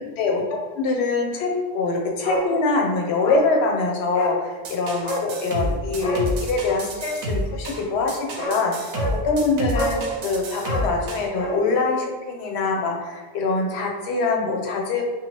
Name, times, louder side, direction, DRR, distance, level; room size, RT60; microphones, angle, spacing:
voice 1, 0.0-8.7 9.1-15.0, left 3 dB, 70° left, 1 dB, 0.8 m, -24 dB
Bark, 2.2-2.5 2.8-2.9 3.2-3.5 4.1-4.4 5.0-5.3 6.0-6.3 7.9-8.0 8.4-8.6 8.9-9.2 9.7-10.0 10.6-11.6 11.9-12.0, right 1 dB, 45° left, 0.4 m, -27 dB
sound 1, 4.6-11.3, equal, 80° right, 0.9 m, -29 dB
2.8 x 2.2 x 2.9 m, 1.3 s
omnidirectional pair, 1.2 m